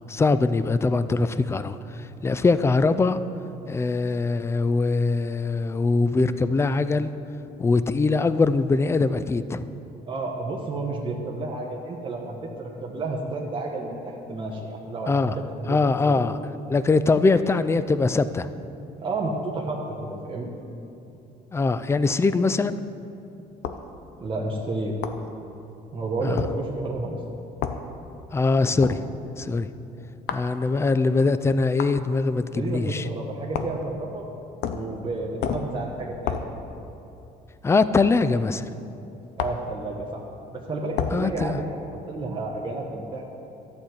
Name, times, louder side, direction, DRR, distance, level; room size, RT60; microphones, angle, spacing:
voice 1, 0.1-1.8 2.2-3.2 3.7-7.1 7.6-9.7 15.1-15.4 15.7-16.4 16.7-18.5 21.5-22.8 26.2-26.4 28.3-29.1 29.4-29.7 30.3-33.0 37.6-38.7 41.1-41.6, left 3 dB, 15° left, 13 dB, 0.3 m, -22 dB
voice 2, 10.1-12.5 12.8-16.2 19.0-20.5 24.2-24.9 25.9-27.2 32.5-34.2 34.7-36.5 39.4-40.2 40.5-43.2, right 2 dB, 30° right, -2 dB, 1.2 m, -31 dB
sound 1, 23.6-23.9 25.0-25.2 26.4-26.5 27.6-27.8 28.8-29.0 30.3-30.5 31.8-32.0 33.5-33.8 34.6-34.9 35.4-35.7 36.3-36.5 38.0-38.1 39.4-39.7 41.0-41.2, left 8 dB, 80° left, 0.6 m, -29 dB
11.5 x 4.3 x 7.9 m, 2.9 s
cardioid pair, 110°, 17 cm